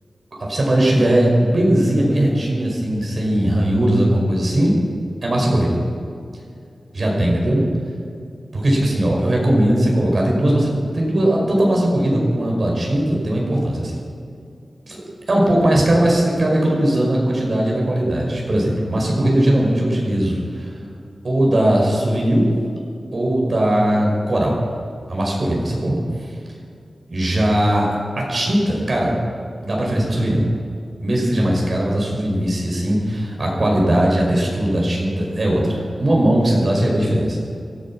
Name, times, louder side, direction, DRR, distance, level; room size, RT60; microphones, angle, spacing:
voice 1, 0.3-4.7 5.2-5.8 6.9-7.7 8.5-14.0 14.9-20.7 21.2-22.5 23.1-24.6 25.1-26.3 27.1-29.2 29.6-30.5 31.0-37.4, right 1 dB, 50° right, -2 dB, 5.1 m, -19 dB
17.5 x 13.5 x 6.0 m, 2.5 s
wide cardioid pair, 80°, 0 cm